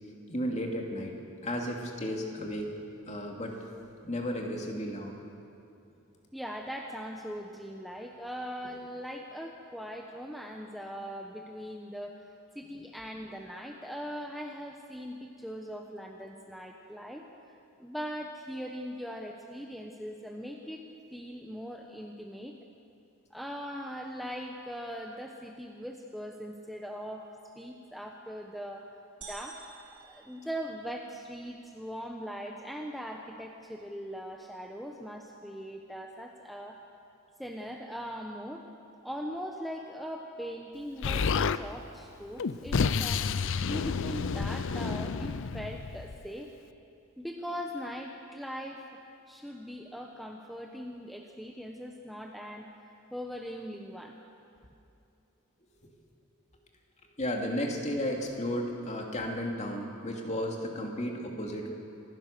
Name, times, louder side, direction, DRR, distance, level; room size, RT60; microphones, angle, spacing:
voice 1, 0.3-1.1 1.4-2.7 3.1-3.6 4.0-5.1 57.2-61.7, equal, 30° left, 1 dB, 2.5 m, -33 dB
voice 2, 6.3-12.3 12.5-20.8 21.1-22.6 23.3-27.3 27.6-28.9 29.3-29.6 29.9-36.8 37.4-38.6 39.0-43.2 43.6-46.5 47.2-49.0 49.3-52.7 53.1-54.2, equal, ahead, 1 dB, 1.0 m, -40 dB
sound 1, 29.2-31.2, right 5 dB, 65° right, 4.9 m, -49 dB
Explosion, 41.0-41.6 42.4-46.3, left 5 dB, 60° left, 0.5 m, -30 dB
26.0 x 16.0 x 6.8 m, 2.7 s
head